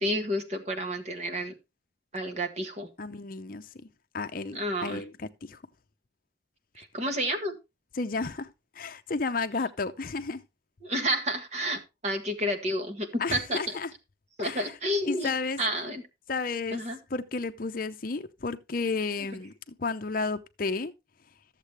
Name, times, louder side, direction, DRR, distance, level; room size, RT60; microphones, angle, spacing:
voice 1, 0.0-1.5 2.1-2.9 4.5-5.0 6.7-7.5 10.8-13.7 14.4-15.3 15.6-16.0 16.7-17.0, equal, 35° right, 1.6 m, -30 dB
voice 2, 3.0-3.9 4.1-5.6 7.9-8.5 8.7-10.4 13.2-13.9 14.4-14.8 15.0-15.6 16.3-16.8 17.1-20.9, left 4 dB, 45° left, 0.6 m, -32 dB
13.5 x 7.4 x 3.3 m
head